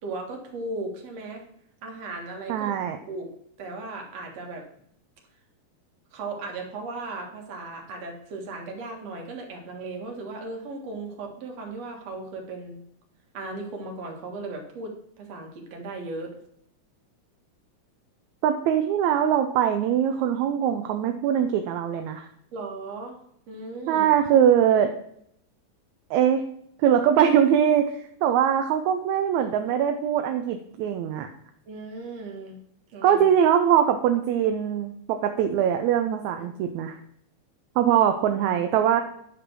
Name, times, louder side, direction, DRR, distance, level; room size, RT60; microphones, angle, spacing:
voice 1, 0.0-1.4 1.8-2.7 3.1-3.3 3.6-4.6 6.1-12.8 13.3-16.4 22.5-23.2 23.5-24.1 31.7-32.6 32.9-33.2, right 3 dB, 60° right, 2 dB, 2.7 m, -36 dB
voice 2, 2.5-3.0 18.4-22.3 23.9-24.9 26.1-26.4 26.8-31.3 33.0-37.0 37.8-39.0, right 9 dB, 80° right, 6 dB, 2.0 m, -22 dB
9.8 x 5.1 x 6.0 m, 0.70 s
omnidirectional pair, 3.3 m